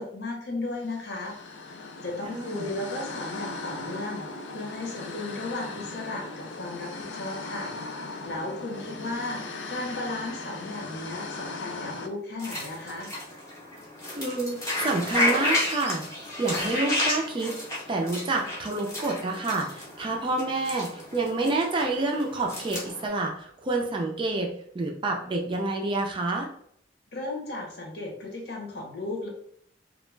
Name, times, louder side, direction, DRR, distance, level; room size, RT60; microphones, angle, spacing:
voice 1, 0.0-1.3 2.0-4.2 4.5-7.7 8.2-13.1 27.1-29.3, left 2 dB, 60° left, -1 dB, 0.8 m, -35 dB
sound 1, 0.8-12.1, left 3 dB, 75° left, 0.4 m, -38 dB
voice 2, 2.2-2.7 14.1-16.0 16.4-17.6 17.9-26.5, right 2 dB, 25° right, 1 dB, 0.4 m, -28 dB
sound 2, 12.4-23.1, left 1 dB, 15° left, 0.7 m, -32 dB
2.3 x 2.1 x 3.1 m, 0.66 s
head